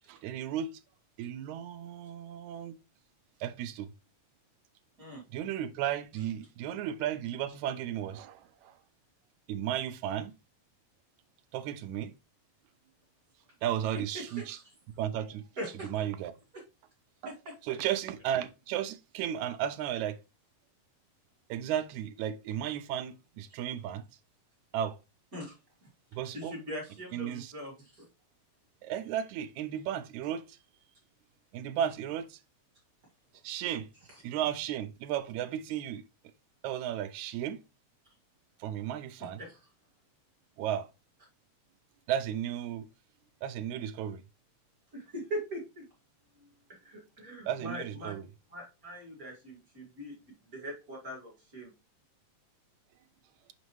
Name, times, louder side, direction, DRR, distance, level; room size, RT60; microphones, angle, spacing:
voice 1, 0.1-0.7 1.2-2.8 3.4-3.9 5.3-8.8 9.5-10.3 11.5-12.1 13.6-14.6 15.0-15.5 15.9-16.3 17.2-17.3 17.7-20.2 21.5-24.1 24.7-25.0 26.1-26.5 27.1-27.5 28.8-30.6 31.5-32.4 33.4-33.9 34.2-36.0 36.6-37.6 38.6-39.4 40.6-40.9 42.1-42.9 43.4-44.2 47.5-48.2, right 10 dB, 80° right, 2.0 m, -34 dB
voice 2, 13.9-14.6 15.6-15.9 17.2-17.6 25.3-25.9 26.3-28.1 34.1-34.2 39.4-39.6 44.9-45.8 46.4-48.2 48.5-51.7, equal, 30° right, 2.4 m, -42 dB
5.8 x 5.2 x 3.1 m
omnidirectional pair, 3.3 m